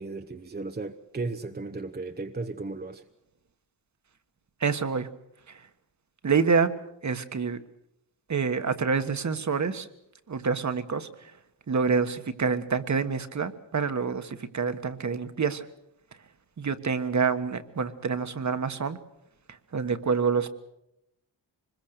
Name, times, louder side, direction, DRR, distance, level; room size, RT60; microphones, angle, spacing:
voice 1, 0.0-3.1, right 3 dB, 20° right, 7 dB, 0.9 m, -35 dB
voice 2, 4.6-5.1 5.5-5.7 6.2-6.7 7.0-7.6 8.3-9.9 10.3-11.3 11.7-15.7 16.6-19.0 19.5-20.5, right 5 dB, 40° right, 10 dB, 1.4 m, -27 dB
25.0 x 21.0 x 6.7 m, 0.83 s
wide cardioid pair, 110°, 43 cm